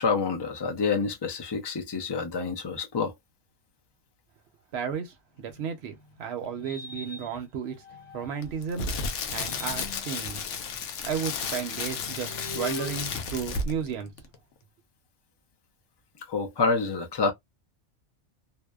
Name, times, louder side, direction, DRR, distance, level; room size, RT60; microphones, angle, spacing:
voice 1, 0.0-3.1 16.3-17.3, left 4 dB, 35° left, 0.4 m, -27 dB
voice 2, 4.7-7.8 8.1-8.9 9.3-10.4 11.0-14.1, right 7 dB, 65° right, 0.8 m, -33 dB
sound 1, 5.4-8.6 9.1-14.3, left 2 dB, 70° left, 1.3 m, -44 dB
Crackle, 8.4-13.9 14.2-14.4, left 4 dB, 85° left, 0.9 m, -33 dB
2.7 x 2.0 x 2.2 m
omnidirectional pair, 1.2 m